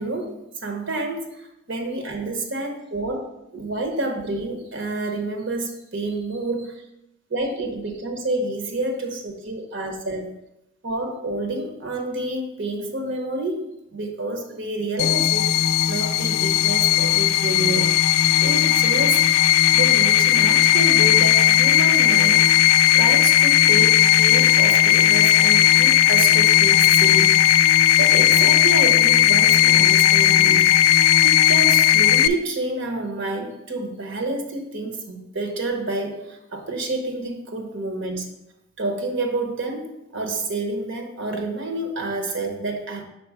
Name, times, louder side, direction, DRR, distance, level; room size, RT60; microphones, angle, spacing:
voice 1, 0.0-3.2 3.5-6.8 7.3-10.3 10.8-15.5 15.9-22.5 22.9-30.7 31.2-38.3 38.8-43.0, right 2 dB, 60° right, 4 dB, 0.9 m, -29 dB
sound 1, 15.0-32.3, left 11 dB, 85° left, 0.3 m, -16 dB
5.3 x 4.3 x 4.8 m, 0.87 s
head